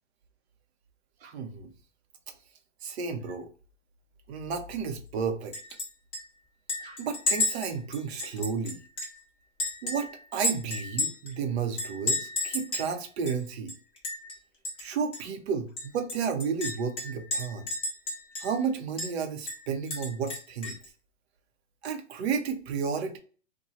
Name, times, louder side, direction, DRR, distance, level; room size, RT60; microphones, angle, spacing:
voice 1, 1.2-1.7 2.8-3.5 4.3-5.5 6.8-8.8 9.8-13.7 14.8-17.7 18.4-20.8 21.8-23.2, right 6 dB, 55° right, 5 dB, 0.8 m, -32 dB
Chink clink, 5.5-5.9 6.1-6.2 6.7-9.2 9.6-11.3 11.8-12.9 13.3-13.4 13.7-14.3 14.6-14.8 15.1-15.2 15.8-18.6 19.0-19.1 19.5-20.9, left 2 dB, 15° left, 0.9 m, -32 dB
2.7 x 2.2 x 2.9 m, 0.40 s
hypercardioid pair, 115°, 37 cm